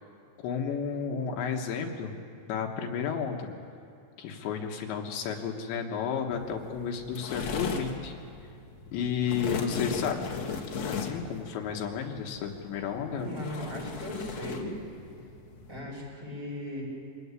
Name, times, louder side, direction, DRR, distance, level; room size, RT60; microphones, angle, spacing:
voice 1, 0.4-2.1 2.5-3.5 4.2-8.2 8.9-10.3 10.8-13.3, left 6 dB, 75° left, 2 dB, 3.5 m, -32 dB
sound 1, 6.3-15.8, left 6 dB, 55° left, 1.9 m, -37 dB
voice 2, 13.1-14.7 15.7-16.8, left 1 dB, 20° right, -3 dB, 6.2 m, -37 dB
25.0 x 16.5 x 9.7 m, 2.6 s
omnidirectional pair, 5.3 m